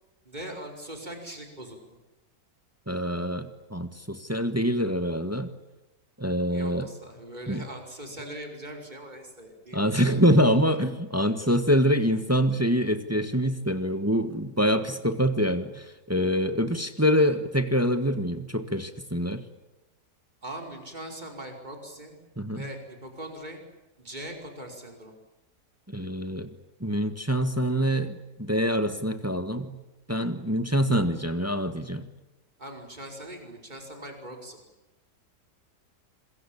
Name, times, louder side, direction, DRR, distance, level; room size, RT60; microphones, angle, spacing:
voice 1, 0.3-2.0 6.5-9.9 10.3-10.5 20.4-22.2 22.5-23.6 24.0-25.1 32.6-34.6, right 1 dB, 25° right, 3 dB, 5.4 m, -41 dB
voice 2, 2.9-5.5 6.2-6.9 7.5-7.6 9.7-19.4 22.4-22.7 25.9-26.5 26.8-29.8 30.1-32.1, equal, 10° right, 9 dB, 1.4 m, -25 dB
27.0 x 22.0 x 8.8 m, 1.0 s
omnidirectional pair, 1.8 m